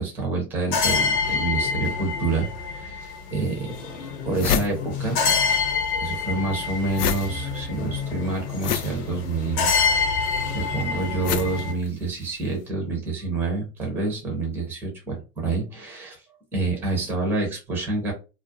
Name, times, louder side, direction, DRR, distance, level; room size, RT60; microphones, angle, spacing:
voice 1, 0.0-3.7 4.2-5.2 6.0-9.7 10.1-10.2 10.5-16.2 16.5-18.1, right 3 dB, 5° right, 0 dB, 0.4 m, -28 dB
sound 1, 0.7-11.7, left 5 dB, 40° left, 0.8 m, -27 dB
sound 2, 3.1-3.2 3.8-3.9 4.1-5.6 5.9-12.4, left 8 dB, 75° left, 0.6 m, -30 dB
2.4 x 2.0 x 2.6 m, 0.30 s
hypercardioid pair, 120°, 48 cm